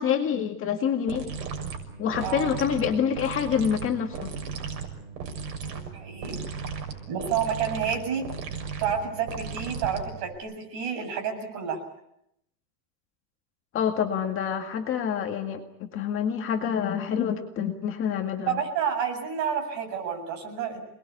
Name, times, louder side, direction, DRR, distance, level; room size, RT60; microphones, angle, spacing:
voice 1, 0.0-1.3 2.0-4.3 13.7-18.6, left 8 dB, 25° left, 3 dB, 2.1 m, -27 dB
sound 1, 1.1-10.4, right 6 dB, 70° right, 6.5 m, -36 dB
voice 2, 5.7-6.4 7.1-8.2 8.5-11.8 18.5-20.8, right 7 dB, 45° right, 4 dB, 7.9 m, -30 dB
28.0 x 21.0 x 8.5 m, 0.77 s
supercardioid pair, 170°, 49 cm